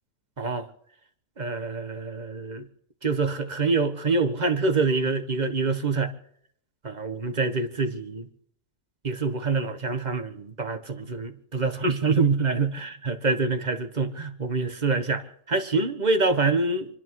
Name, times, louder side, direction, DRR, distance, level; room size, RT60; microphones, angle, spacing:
voice 1, 0.4-0.7 1.4-2.6 3.0-6.1 6.8-8.3 9.0-16.9, right 3 dB, 30° right, 1.4 m, -26 dB
28.5 x 10.5 x 4.7 m
omnidirectional pair, 1.6 m